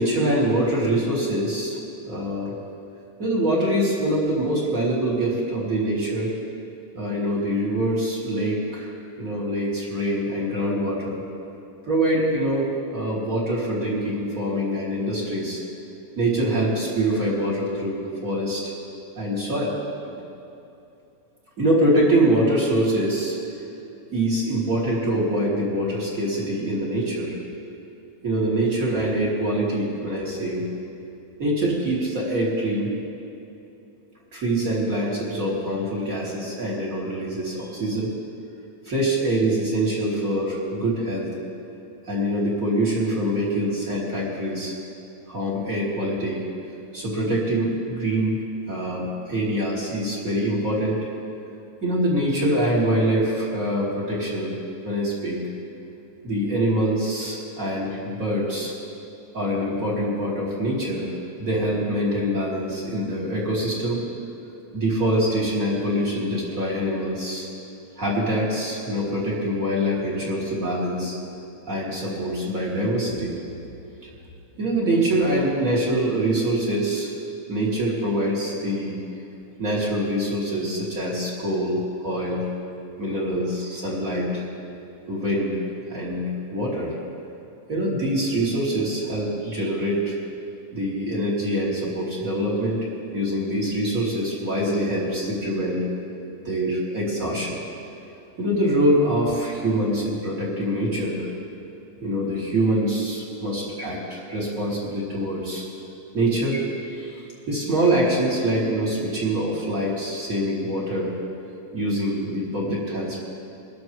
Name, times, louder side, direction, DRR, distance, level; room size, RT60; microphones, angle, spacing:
voice 1, 0.0-1.8 2.1-2.5 3.2-6.3 6.9-8.9 9.2-11.2 11.9-15.6 16.2-18.7 19.2-19.7 20.0-20.1 21.6-23.4 24.1-27.3 28.2-30.6 31.4-32.9 34.3-38.1 38.9-41.3 42.1-44.7 45.3-46.4 46.9-48.4 48.7-51.0 51.8-54.5 54.8-55.4 56.2-58.7 59.3-64.0 64.7-67.5 68.0-71.1 71.7-73.4 74.5-77.1 77.5-79.0 79.6-82.4 83.0-84.4 85.1-85.6 85.9-86.9 87.7-90.1 90.7-92.8 93.1-95.8 96.4-97.6 98.4-101.3 102.0-105.6 106.1-107.2 107.5-111.1 111.7-113.2, right 1 dB, 25° right, -6 dB, 2.7 m, -24 dB
24.0 x 12.5 x 3.2 m, 2.8 s
omnidirectional pair, 4.0 m